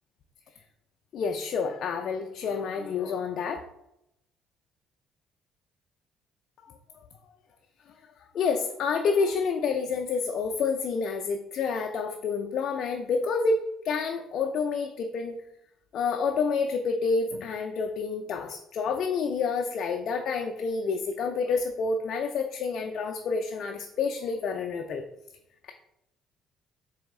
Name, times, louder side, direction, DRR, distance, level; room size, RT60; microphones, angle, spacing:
voice 1, 1.1-3.6 8.3-15.3 15.9-25.0, left 5 dB, 65° left, 4 dB, 0.3 m, -28 dB
3.9 x 2.7 x 3.6 m, 0.80 s
supercardioid pair, 75°, 0 cm